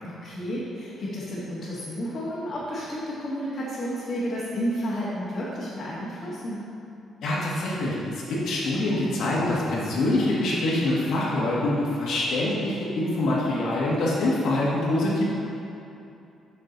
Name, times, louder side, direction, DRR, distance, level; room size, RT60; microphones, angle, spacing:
voice 1, 0.0-6.6, equal, 50° left, -9 dB, 1.6 m, -31 dB
voice 2, 7.2-15.2, left 1 dB, 75° left, -6 dB, 1.6 m, -25 dB
6.9 x 6.0 x 4.0 m, 2.7 s
cardioid pair, 90°, 0 cm